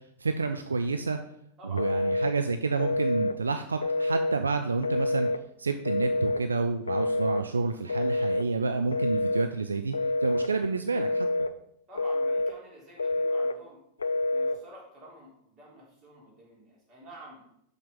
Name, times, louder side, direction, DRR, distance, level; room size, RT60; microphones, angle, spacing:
voice 1, 0.2-1.2 1.7-5.3 5.6-9.9 10.2-11.3, right 4 dB, 75° right, 7 dB, 0.4 m, -29 dB
voice 2, 1.6-2.0 11.9-13.8 14.3-17.4, right 1 dB, 30° right, -4 dB, 3.4 m, -49 dB
Telephone, 1.8-2.3 2.8-3.4 3.8-4.4 4.8-5.4 5.9-6.4 6.9-7.4 7.9-8.5 8.9-9.5 9.9-10.5 11.0-11.5 11.9-12.5 13.0-13.6 14.0-14.6, left 2 dB, 75° left, 0.3 m, -27 dB
5.9 x 5.9 x 5.1 m, 0.74 s
figure-of-eight pair, 90°, 0 cm